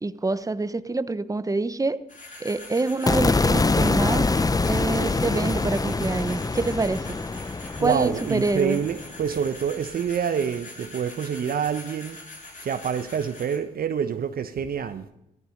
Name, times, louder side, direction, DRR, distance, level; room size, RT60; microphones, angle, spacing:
voice 1, 0.0-2.0 2.4-4.3 4.7-7.2 7.8-8.8, right 3 dB, 20° right, 0.9 m, -26 dB
sound 1, 2.1-13.6, left 2 dB, 45° left, 4.9 m, -43 dB
sound 2, 3.1-9.3, left 3 dB, 20° left, 0.7 m, -24 dB
voice 2, 7.8-12.2 12.6-15.1, right 7 dB, 55° right, 1.0 m, -27 dB
14.5 x 13.5 x 5.2 m
supercardioid pair, 55°, 18 cm